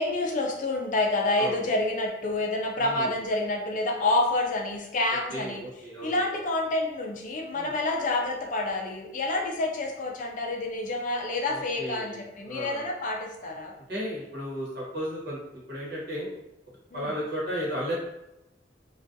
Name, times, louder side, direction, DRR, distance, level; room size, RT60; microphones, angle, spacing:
voice 1, 0.0-5.6 6.0-13.7 16.9-17.1, left 2 dB, 45° left, 1 dB, 0.4 m, -28 dB
voice 2, 1.4-1.7 2.8-3.1 5.3-6.2 7.5-7.7 11.5-12.9 13.9-16.3 16.9-17.9, equal, 65° right, -6 dB, 1.0 m, -34 dB
2.4 x 2.2 x 2.6 m, 0.88 s
head